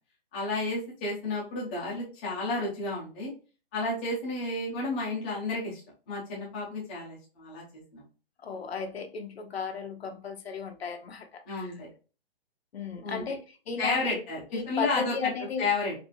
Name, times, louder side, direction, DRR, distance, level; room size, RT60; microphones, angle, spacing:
voice 1, 0.3-3.3 3.7-5.8 6.1-7.6 7.9-8.0 11.5-11.9 13.0-13.2 13.8-15.3 15.6-15.9, left 2 dB, 10° left, 0.5 m, -31 dB
voice 2, 8.4-11.7 12.7-14.2 14.5-15.7, left 5 dB, 85° left, 0.9 m, -35 dB
4.1 x 2.6 x 2.9 m
hypercardioid pair, 170°, 30 cm